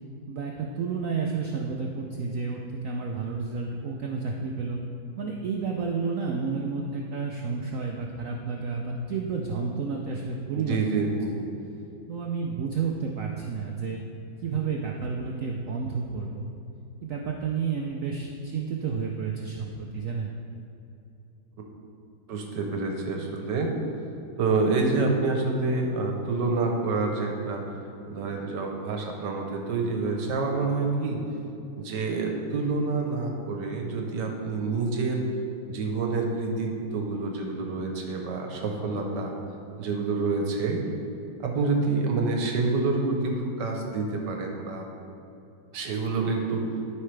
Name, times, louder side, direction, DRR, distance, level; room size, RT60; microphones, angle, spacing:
voice 1, 0.3-4.8 5.2-10.8 12.1-14.0 14.4-16.5 17.0-20.3, right 5 dB, 85° right, 0 dB, 0.7 m, -31 dB
voice 2, 10.5-11.3 22.3-23.7 24.4-27.6 28.1-31.2 31.8-35.2 35.7-39.3 39.8-40.8 41.4-44.9 45.7-46.7, right 3 dB, 65° right, 2 dB, 1.5 m, -27 dB
13.0 x 5.6 x 3.3 m, 2.8 s
omnidirectional pair, 2.2 m